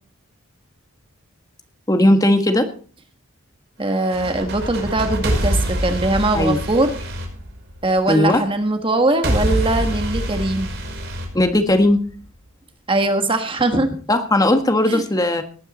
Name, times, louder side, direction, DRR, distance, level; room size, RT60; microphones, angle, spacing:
voice 1, 1.9-2.7 6.3-6.6 8.1-8.4 11.3-12.0 14.1-15.4, left 1 dB, 15° left, 7 dB, 1.5 m, -17 dB
voice 2, 3.8-6.9 7.8-10.7 12.9-14.0 14.9-15.0, right 2 dB, 25° right, 6 dB, 1.4 m, -21 dB
sound 1, 4.0-8.1 9.2-12.1, equal, 60° right, 5.4 m, -25 dB
18.5 x 9.2 x 4.2 m, 0.42 s
head